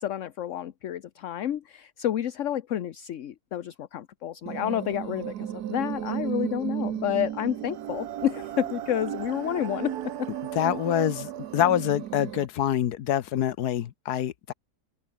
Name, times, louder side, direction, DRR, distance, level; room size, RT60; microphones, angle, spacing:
voice 1, 0.0-10.3, left 11 dB, 60° left, 1.1 m, -30 dB
sound 1, 4.5-12.5, right 11 dB, 80° right, 1.4 m, -34 dB
voice 2, 10.5-14.5, left 11 dB, 80° left, 1.4 m, -26 dB
open air
omnidirectional pair, 1.7 m